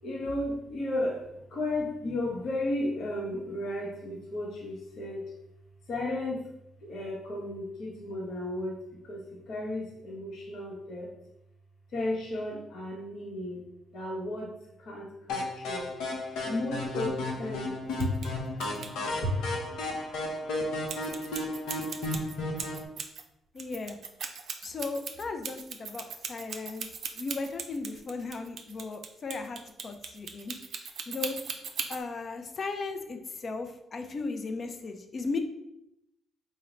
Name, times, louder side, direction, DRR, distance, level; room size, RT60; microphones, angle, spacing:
voice 1, 0.0-5.2 5.9-6.4 6.8-11.1 11.9-13.6 13.9-14.5 14.8-15.9 16.5-18.1 18.5-18.8 19.2-19.3, left 1 dB, 65° left, -2 dB, 1.0 m, -34 dB
sound 1, 15.3-22.9, left 2 dB, 85° left, 0.6 m, -33 dB
sound 2, 17.9-18.3 18.6-18.9 20.9-23.2 23.6-32.0, right 6 dB, 60° right, 0.4 m, -38 dB
voice 2, 23.5-24.0 24.6-26.9 27.2-30.6 31.1-31.4 31.9-35.4, left 3 dB, 45° left, 6 dB, 0.4 m, -36 dB
3.7 x 2.1 x 4.2 m, 0.83 s
cardioid pair, 90°, 0 cm